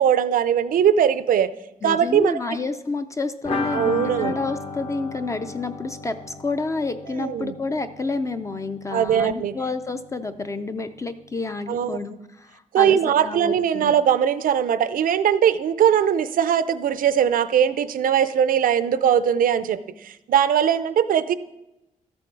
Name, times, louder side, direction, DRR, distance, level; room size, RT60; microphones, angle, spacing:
voice 1, 0.0-1.5 1.8-2.6 3.7-4.4 7.2-7.5 8.9-9.5 11.7-12.0 12.7-21.3, right 9 dB, 75° right, 14 dB, 0.5 m, -20 dB
voice 2, 1.8-6.2 6.4-13.0 13.2-13.9, left 3 dB, 20° left, 9 dB, 0.4 m, -29 dB
sound 1, 3.4-9.1 9.3-9.4 9.7-9.8, left 3 dB, 40° left, 0.9 m, -34 dB
13.0 x 7.0 x 4.5 m, 0.93 s
wide cardioid pair, 160°, 14 cm